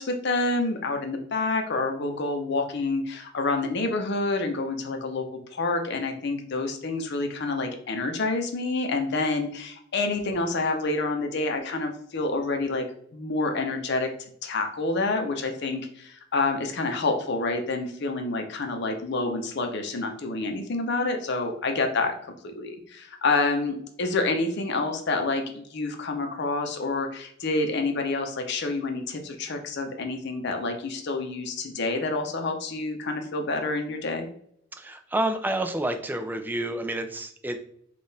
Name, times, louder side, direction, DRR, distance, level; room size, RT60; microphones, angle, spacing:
voice 1, 0.0-12.9 13.1-14.1 14.4-22.1 22.4-34.3, left 3 dB, 60° left, 5 dB, 0.6 m, -28 dB
voice 2, 34.8-37.6, right 1 dB, 10° right, 6 dB, 0.4 m, -29 dB
3.8 x 2.4 x 3.9 m, 0.66 s
head